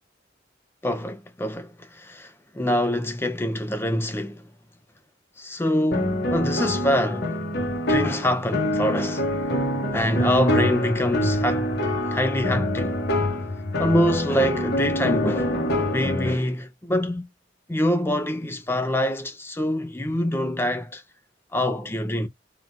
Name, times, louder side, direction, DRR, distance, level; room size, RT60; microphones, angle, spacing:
voice 1, 0.8-4.5 5.4-9.3 9.9-11.7 12.1-13.0 13.8-17.3 17.7-21.0 21.5-22.3, left 1 dB, 10° left, 0.4 m, -25 dB
sound 1, 5.9-16.3, left 1 dB, 60° left, 1.0 m, -25 dB
3.6 x 2.3 x 2.6 m
head